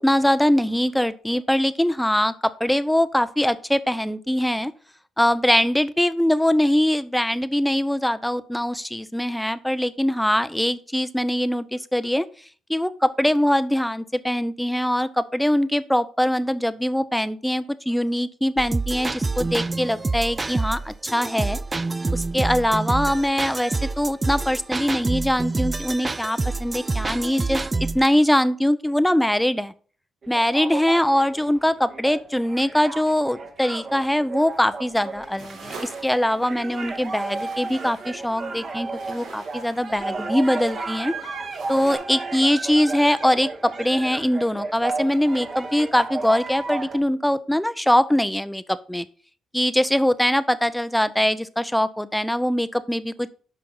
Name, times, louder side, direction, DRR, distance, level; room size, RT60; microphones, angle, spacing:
voice 1, 0.0-4.7 5.2-12.2 12.7-21.6 22.1-29.7 30.3-41.1 41.7-49.1 49.5-53.3, equal, 5° left, 14 dB, 0.6 m, -22 dB
sound 1, 18.6-28.1, right 3 dB, 25° right, 0.3 m, -27 dB
sound 2, 30.2-47.0, right 3 dB, 45° right, 1.6 m, -33 dB
sound 3, 34.5-42.0, right 4 dB, 80° right, 3.7 m, -45 dB
9.6 x 5.8 x 3.9 m, 0.40 s
cardioid pair, 90°, 0 cm